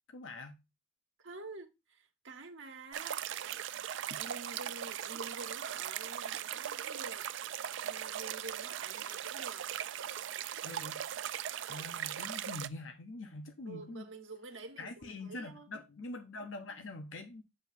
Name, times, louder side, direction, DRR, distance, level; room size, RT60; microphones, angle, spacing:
voice 1, 0.1-0.6 10.6-11.0 11.7-14.1 14.8-17.4, left 2 dB, 80° left, 0.8 m, -44 dB
voice 2, 1.2-3.2 3.5-3.6 4.1-7.3 7.8-9.7 13.6-15.7, right 3 dB, 85° right, 1.2 m, -48 dB
sound 1, 2.9-12.7, right 10 dB, 70° right, 0.4 m, -39 dB
7.6 x 2.7 x 5.8 m
head